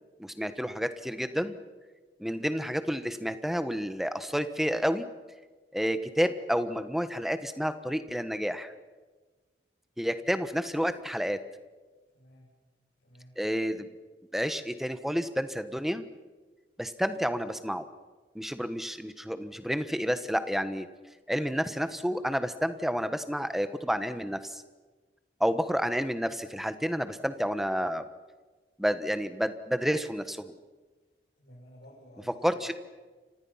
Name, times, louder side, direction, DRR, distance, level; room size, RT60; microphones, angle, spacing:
voice 1, 0.2-1.6 2.2-5.1 5.7-8.7 10.0-11.4 13.4-13.9 14.3-16.0 16.8-17.9 18.3-20.9 21.3-24.6 25.4-28.0 28.8-30.6 32.4-32.7, equal, ahead, 10 dB, 1.2 m, -30 dB
voice 2, 12.1-12.5 13.0-13.4 31.4-32.7, equal, 75° left, -6 dB, 6.6 m, -53 dB
30.0 x 26.0 x 5.8 m, 1.3 s
head